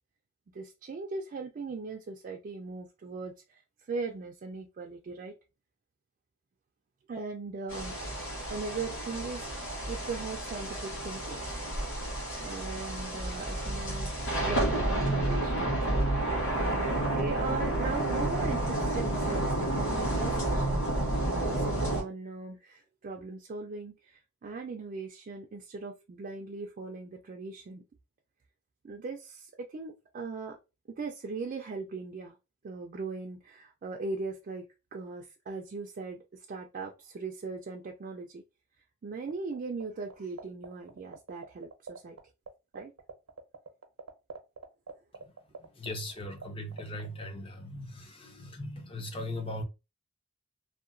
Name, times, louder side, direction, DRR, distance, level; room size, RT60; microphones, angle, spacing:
voice 1, 0.5-3.6 3.9-5.3 7.1-8.1 8.5-11.4 12.4-14.1 14.4-20.7 21.3-27.8 28.8-30.6 31.0-32.4 32.6-38.4 39.0-42.2 42.7-42.9, right 4 dB, 40° right, 0.3 m, -39 dB
sound 1, 7.7-22.0, right 1 dB, 65° left, 1.2 m, -30 dB
sound 2, 39.3-39.8 40.1-42.2 42.5-42.6 42.7-46.5 46.7-47.1, right 5 dB, 85° right, 0.6 m, -42 dB
voice 2, 45.6-49.6, left 1 dB, 25° left, 0.5 m, -39 dB
2.7 x 2.1 x 2.5 m
head